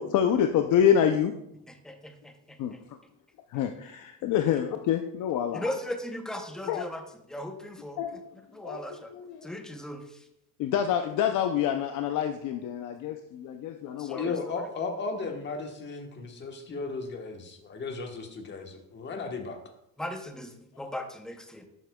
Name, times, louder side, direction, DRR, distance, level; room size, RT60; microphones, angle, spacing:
voice 1, 0.0-1.3 2.6-2.7 3.5-5.7 6.7-6.8 8.0-8.2 8.6-9.5 10.6-14.2, left 9 dB, 60° left, 6 dB, 0.6 m, -27 dB
voice 2, 5.5-7.0 7.3-8.2 8.5-9.1 9.4-10.3 14.0-14.6 20.0-21.6, left 1 dB, ahead, 5 dB, 0.7 m, -37 dB
voice 3, 14.1-19.6, left 4 dB, 30° left, 3 dB, 1.2 m, -35 dB
11.0 x 8.1 x 2.3 m, 0.77 s
cardioid pair, 160°, 35 cm